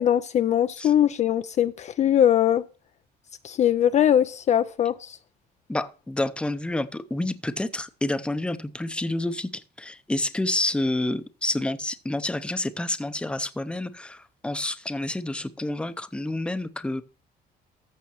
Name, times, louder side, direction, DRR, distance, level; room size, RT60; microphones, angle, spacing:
voice 1, 0.0-2.6 3.4-5.2, left 10 dB, 45° left, 0.4 m, -21 dB
voice 2, 5.7-17.0, left 1 dB, 5° left, 0.6 m, -29 dB
14.0 x 6.4 x 3.0 m
cardioid pair, 110°, 17 cm